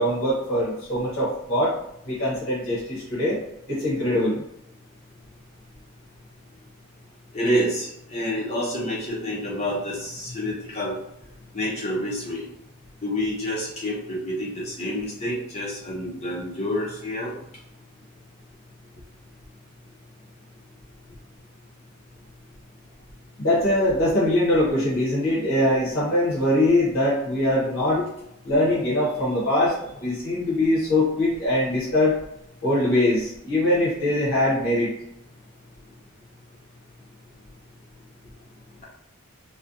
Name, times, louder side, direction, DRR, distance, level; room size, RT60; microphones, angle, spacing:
voice 1, 0.0-1.7 2.1-3.4 3.7-4.4 23.4-28.1 28.4-32.1 32.6-34.9, left 1 dB, 60° left, -7 dB, 0.8 m, -22 dB
voice 2, 7.3-11.0 11.5-12.5 13.0-17.4, equal, 30° left, -4 dB, 0.5 m, -28 dB
2.5 x 2.1 x 2.5 m, 0.79 s
head